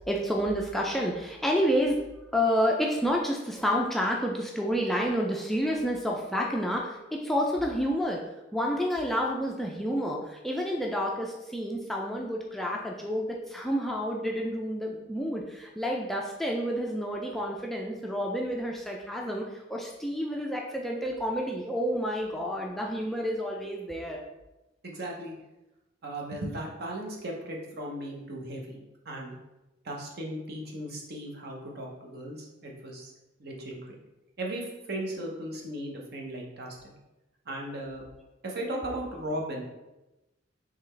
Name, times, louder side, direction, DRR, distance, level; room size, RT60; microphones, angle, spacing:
voice 1, 0.1-2.0 2.3-8.2 8.5-24.2, equal, ahead, -1 dB, 0.3 m, -29 dB
voice 2, 24.8-25.3 26.0-28.8 29.0-29.4 29.8-33.1 33.4-34.0 34.4-36.9 37.5-38.0 38.4-39.6, right 1 dB, 55° right, -1 dB, 0.8 m, -36 dB
3.8 x 3.3 x 3.2 m, 0.99 s
head